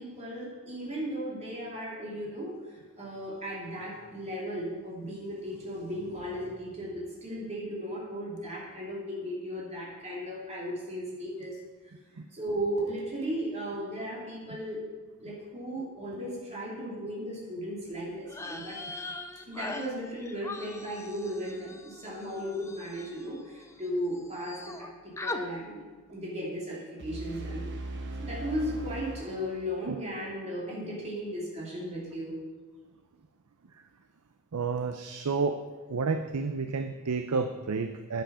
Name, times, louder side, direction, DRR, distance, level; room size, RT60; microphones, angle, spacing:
voice 1, 0.0-2.6 3.0-11.6 12.3-14.9 15.2-18.8 19.5-25.8 26.1-27.7 28.2-32.4, equal, 30° right, -4 dB, 3.0 m, -36 dB
sound 1, 18.3-23.9 24.1-24.9 25.2-25.4, left 2 dB, 15° left, 0.6 m, -41 dB
sound 2, 27.0-30.0, right 2 dB, 55° right, 1.1 m, -39 dB
voice 2, 34.5-35.6 35.9-38.2, right 4 dB, 85° right, 8 dB, 0.6 m, -30 dB
10.0 x 7.9 x 5.5 m, 1.3 s
head